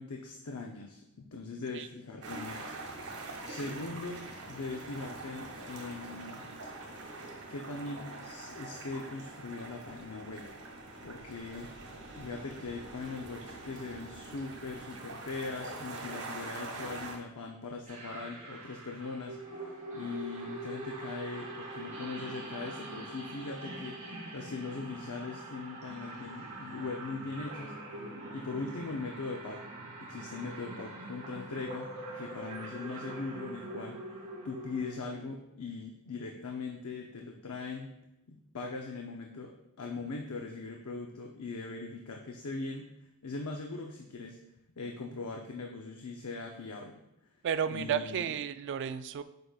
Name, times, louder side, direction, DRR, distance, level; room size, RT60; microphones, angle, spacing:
voice 1, 0.0-2.7 3.2-6.4 7.5-10.5 11.0-11.7 12.1-29.6 30.0-34.0 34.4-37.9 38.3-42.9 43.2-44.4 44.8-47.0 47.7-48.3, left 3 dB, 80° left, 1 dB, 0.6 m, -40 dB
sound 1, 2.2-17.2, right 2 dB, 90° right, 1.6 m, -44 dB
sound 2, 17.9-34.9, right 2 dB, 35° right, 2.1 m, -43 dB
voice 2, 47.4-49.2, right 8 dB, 55° right, 12 dB, 0.3 m, -32 dB
7.7 x 5.4 x 2.4 m, 0.86 s
head